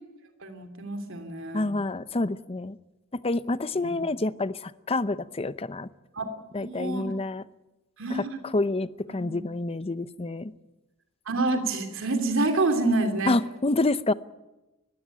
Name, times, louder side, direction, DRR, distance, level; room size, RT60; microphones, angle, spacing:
voice 1, 0.4-1.7 3.8-3.9 6.2-6.3 6.5-7.1 8.0-8.4 9.1-9.2 11.3-13.3, right 2 dB, 65° right, 7 dB, 3.0 m, -27 dB
voice 2, 1.5-2.8 3.1-5.9 6.5-7.4 8.1-10.5 13.3-14.1, left 2 dB, 30° left, 15 dB, 0.7 m, -28 dB
20.5 x 16.0 x 9.9 m, 1.0 s
head